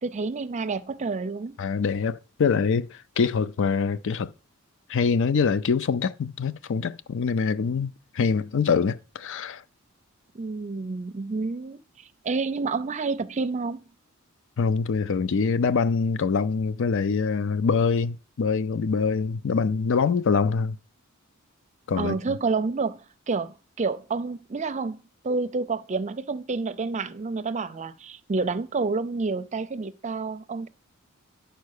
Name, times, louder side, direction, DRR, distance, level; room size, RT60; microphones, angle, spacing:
voice 1, 0.0-1.6 10.3-13.8 22.0-23.0 23.3-30.7, right 4 dB, 35° right, 0.5 m, -29 dB
voice 2, 1.6-4.3 4.9-9.6 14.6-20.8 21.9-22.2, left 5 dB, 60° left, 0.5 m, -24 dB
10.5 x 4.5 x 6.5 m
head